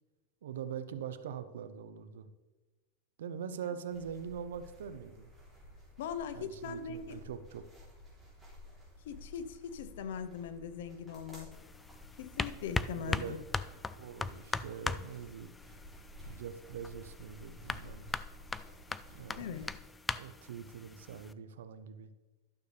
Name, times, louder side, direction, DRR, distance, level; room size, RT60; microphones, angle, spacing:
voice 1, 0.4-2.3 3.2-5.3 6.3-7.7 12.9-13.4 14.0-15.5 16.2-18.1 19.1-19.6 20.2-22.1, right 8 dB, 85° right, 12 dB, 0.7 m, -43 dB
sound 1, 3.9-19.8, left 1 dB, 5° right, 3.3 m, -54 dB
voice 2, 6.0-7.2 9.0-11.5 12.2-13.4 19.4-19.6, left 7 dB, 75° left, 11 dB, 0.8 m, -40 dB
sound 2, 11.5-21.3, left 3 dB, 10° left, 0.3 m, -40 dB
12.0 x 6.7 x 3.4 m, 1.2 s
supercardioid pair, 140°, 0 cm